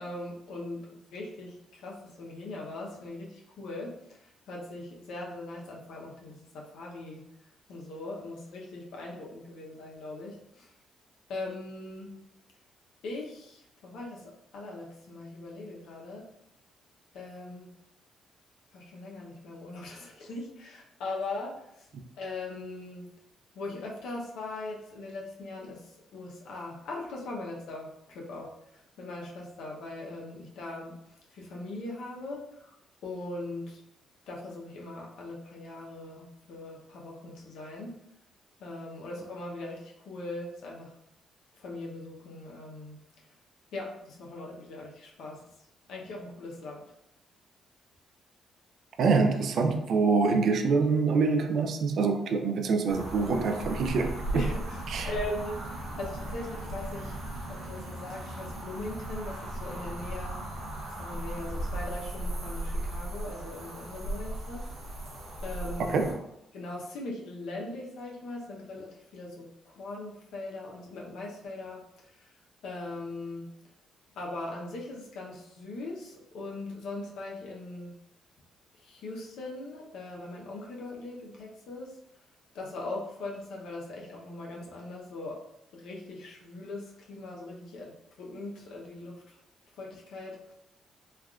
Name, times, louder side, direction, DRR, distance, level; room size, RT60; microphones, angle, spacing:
voice 1, 0.0-7.2 7.7-10.7 11.3-12.2 13.0-16.2 17.1-17.7 18.7-21.9 22.2-23.1 23.5-28.5 29.0-31.0 31.3-32.7 33.0-33.8 34.3-38.0 38.6-40.9 41.6-43.0 43.7-45.4 45.9-46.8 54.3-57.2 57.5-60.4 61.0-64.7 65.4-66.0 66.5-71.8 72.2-72.3 72.6-73.5 74.1-78.0 78.8-81.9 82.5-85.4 85.7-89.4 89.8-90.4, left 2 dB, 80° left, -2 dB, 0.7 m, -40 dB
voice 2, 49.0-54.4 54.9-55.1 65.9-66.1, right 4 dB, 65° right, 4 dB, 0.3 m, -25 dB
sound 1, 52.9-66.1, right 1 dB, 85° right, 0.8 m, -37 dB
3.3 x 2.4 x 2.3 m, 0.84 s
cardioid pair, 90°, 0 cm